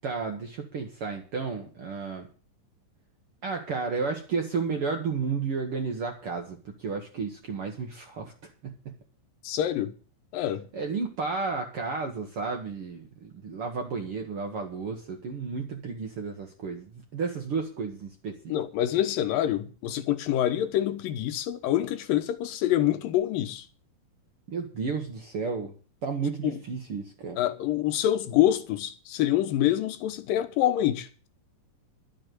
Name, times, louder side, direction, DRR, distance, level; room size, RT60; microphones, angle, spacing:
voice 1, 0.0-2.3 3.4-8.3 8.6-8.9 10.7-18.5 24.5-25.7 26.0-27.4, right 4 dB, 60° right, 1.6 m, -32 dB
voice 2, 9.4-9.9 10.3-10.7 18.5-23.7 26.4-26.6 27.4-31.3, left 12 dB, 75° left, 2.7 m, -26 dB
12.0 x 6.7 x 9.1 m
omnidirectional pair, 4.1 m